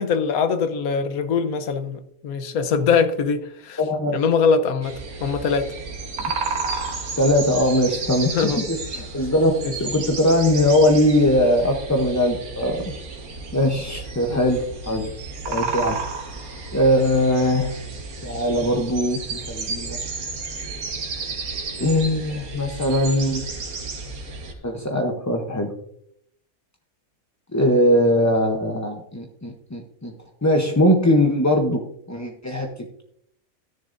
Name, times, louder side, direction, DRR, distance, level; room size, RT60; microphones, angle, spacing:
voice 1, 0.0-3.8 4.1-5.7 8.3-8.6 9.6-9.7 14.3-14.4 15.5-15.6, left 5 dB, 80° left, 1.3 m, -22 dB
voice 2, 3.8-4.2 6.2-6.3 7.2-8.4 8.7-12.8 13.5-15.1 15.5-16.0 16.7-17.7 18.2-20.0 21.8-23.4 24.6-25.7 27.5-30.1 30.4-31.8 32.1-32.7, left 1 dB, 15° left, 0.6 m, -20 dB
sound 1, 4.8-24.5, right 4 dB, 85° right, 1.9 m, -32 dB
13.5 x 10.5 x 2.6 m
omnidirectional pair, 1.5 m